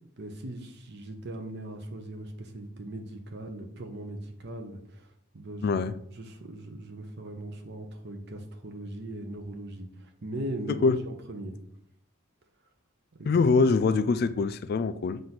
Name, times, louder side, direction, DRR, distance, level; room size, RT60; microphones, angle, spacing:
voice 1, 0.2-5.8 6.1-11.6 13.2-13.4, right 1 dB, 50° right, 0.8 m, -39 dB
voice 2, 5.6-5.9 10.7-11.0 13.3-15.2, left 4 dB, 50° left, 0.3 m, -24 dB
7.6 x 2.6 x 5.9 m
head